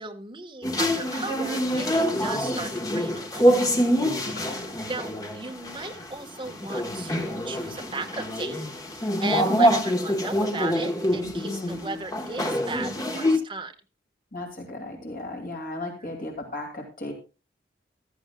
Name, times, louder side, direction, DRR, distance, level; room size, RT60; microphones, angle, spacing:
voice 1, 0.0-3.6 4.4-8.6 8.9-13.7, right 3 dB, 25° right, 2 dB, 1.5 m, -36 dB
sound 1, 0.6-13.4, equal, 20° left, 1.3 m, -25 dB
voice 2, 4.2-4.6 9.5-9.7 11.2-12.0 14.3-17.1, left 1 dB, 50° left, 2 dB, 2.4 m, -35 dB
14.5 x 13.0 x 2.3 m, 0.31 s
head